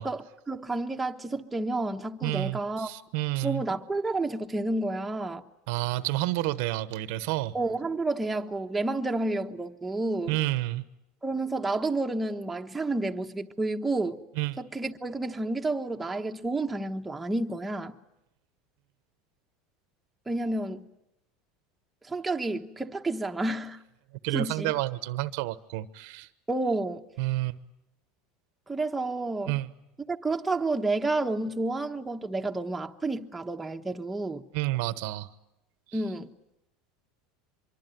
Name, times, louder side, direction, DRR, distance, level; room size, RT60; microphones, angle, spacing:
voice 1, 0.0-2.9 3.4-5.4 7.5-10.4 11.2-14.2 14.6-18.0 20.3-20.8 22.0-23.8 24.3-24.7 26.5-27.0 28.7-29.6 30.1-34.4 35.9-36.3, right 2 dB, 10° right, 1.2 m, -30 dB
voice 2, 2.2-3.6 5.7-7.5 10.3-10.8 14.4-14.6 24.2-26.3 27.2-27.6 29.5-29.7 34.5-35.3, right 18 dB, 70° right, 1.0 m, -29 dB
24.5 x 23.5 x 9.3 m
supercardioid pair, 135°, 0 cm